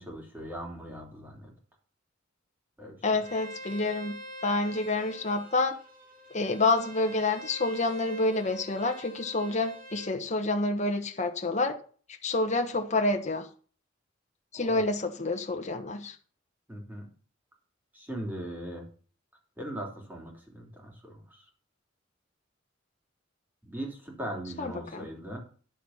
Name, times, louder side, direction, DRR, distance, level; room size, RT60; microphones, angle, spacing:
voice 1, 0.0-1.5 2.8-3.0 14.5-14.9 16.7-17.1 17.9-18.8 19.6-21.4 23.6-25.4, right 1 dB, 10° right, -1 dB, 3.2 m, -39 dB
voice 2, 3.0-4.2 4.4-5.8 6.3-11.7 12.2-13.5 14.5-16.1 24.6-25.1, left 2 dB, 35° left, 4 dB, 1.3 m, -28 dB
Bowed string instrument, 3.2-10.1, equal, 45° right, 2.0 m, -45 dB
10.5 x 7.2 x 5.7 m, 0.41 s
head